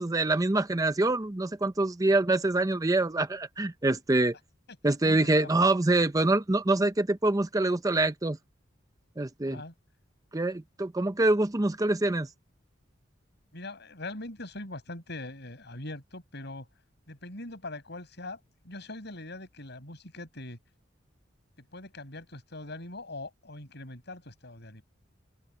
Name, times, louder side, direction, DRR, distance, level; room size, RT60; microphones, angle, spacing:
voice 1, 0.0-4.3 4.8-8.4 9.2-9.6 10.3-12.3, right 2 dB, 20° right, 0.6 m, -25 dB
voice 2, 4.9-5.6 9.4-9.7 13.5-16.7 17.1-18.4 18.6-20.6 21.7-24.8, left 2 dB, 60° left, 7.8 m, -42 dB
head